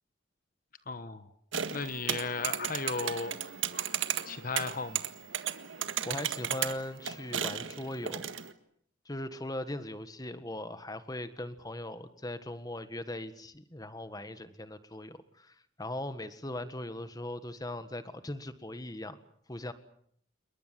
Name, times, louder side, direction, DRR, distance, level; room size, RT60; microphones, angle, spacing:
voice 1, 0.9-1.3 1.7-3.4 3.7-5.0, left 4 dB, 45° left, 11 dB, 1.2 m, -36 dB
sound 1, 1.5-8.5, right 8 dB, 90° right, 1.8 m, -35 dB
voice 2, 6.0-8.3 9.0-19.2 19.5-19.7, left 1 dB, 20° left, 11 dB, 1.6 m, -39 dB
28.5 x 22.5 x 7.6 m, 0.66 s
head